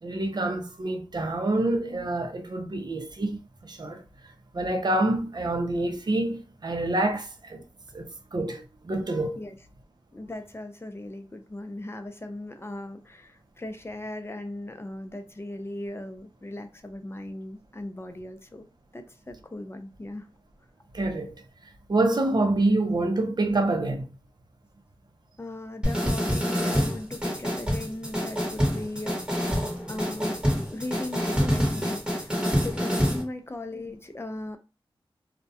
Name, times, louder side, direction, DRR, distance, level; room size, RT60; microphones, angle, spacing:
voice 1, 0.0-4.0 4.5-7.6 7.9-9.4 20.9-21.3 21.9-24.1, right 2 dB, 50° right, 0.5 m, -27 dB
voice 2, 10.1-18.7 18.9-20.3 25.4-30.4 30.7-34.6, left 1 dB, 25° left, 0.4 m, -38 dB
sound 1, 25.8-33.2, equal, 10° right, 1.0 m, -26 dB
2.2 x 2.1 x 2.6 m
wide cardioid pair, 55°, 9 cm